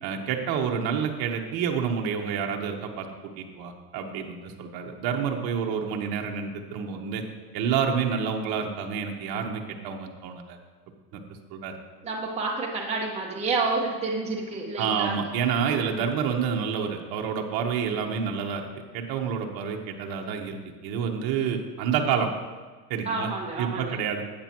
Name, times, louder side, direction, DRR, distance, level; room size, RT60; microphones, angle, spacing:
voice 1, 0.0-7.2 7.5-10.6 11.1-11.2 11.5-11.7 14.8-20.6 20.8-22.3 22.9-23.3 23.6-24.2, right 7 dB, 45° right, 2 dB, 1.3 m, -28 dB
voice 2, 12.0-15.2 23.0-24.0, right 3 dB, 15° right, -3 dB, 1.4 m, -29 dB
13.0 x 8.7 x 3.1 m, 1.4 s
hypercardioid pair, 110°, 50 cm